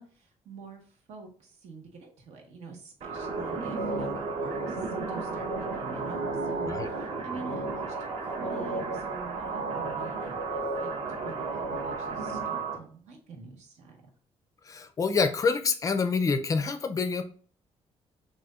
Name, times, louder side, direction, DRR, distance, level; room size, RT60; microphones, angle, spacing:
voice 1, 0.0-10.9 11.2-14.0, right 3 dB, 80° right, 2 dB, 1.3 m, -46 dB
sound 1, 3.0-12.8, right 3 dB, 50° right, 0.9 m, -33 dB
voice 2, 14.6-17.2, left 4 dB, 30° left, 9 dB, 0.4 m, -27 dB
6.1 x 2.6 x 2.4 m, 0.43 s
cardioid pair, 165°, 11 cm